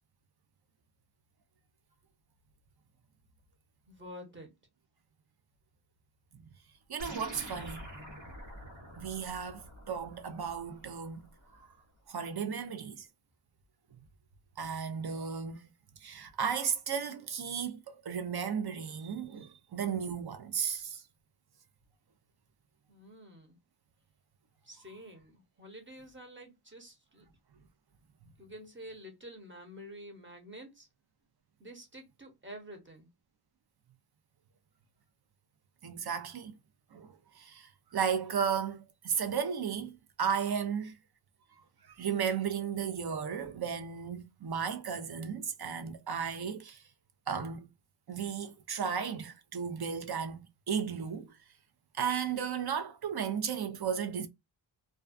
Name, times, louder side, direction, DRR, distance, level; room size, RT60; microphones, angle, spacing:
voice 1, 3.9-4.5 22.9-23.6 24.6-27.3 28.4-30.9 31.6-33.1, equal, 25° right, 1.0 m, -49 dB
voice 2, 6.9-7.8 9.0-11.3 11.5-11.7 12.1-13.1 14.6-15.7 16.0-21.0 35.8-36.5 36.9-41.0 41.9-46.8 47.3-47.7 48.1-51.3 51.9-54.3, right 7 dB, 55° right, 0.6 m, -34 dB
sound 1, 7.0-11.7, equal, 75° right, 1.2 m, -47 dB
2.3 x 2.2 x 2.5 m
wide cardioid pair, 70°, 46 cm